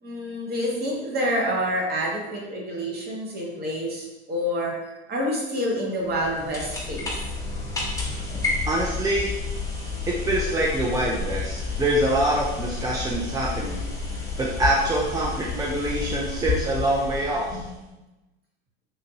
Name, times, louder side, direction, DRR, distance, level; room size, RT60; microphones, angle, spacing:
voice 1, 0.0-7.3 17.5-17.6, equal, 30° right, -2 dB, 1.1 m, -28 dB
sound 1, 6.1-17.9, left 4 dB, 10° left, 1.0 m, -31 dB
voice 2, 8.7-9.3 10.1-13.8 14.4-17.6, right 1 dB, 10° right, -3 dB, 0.3 m, -25 dB
3.6 x 2.6 x 2.8 m, 1.0 s
hypercardioid pair, 90°, 33 cm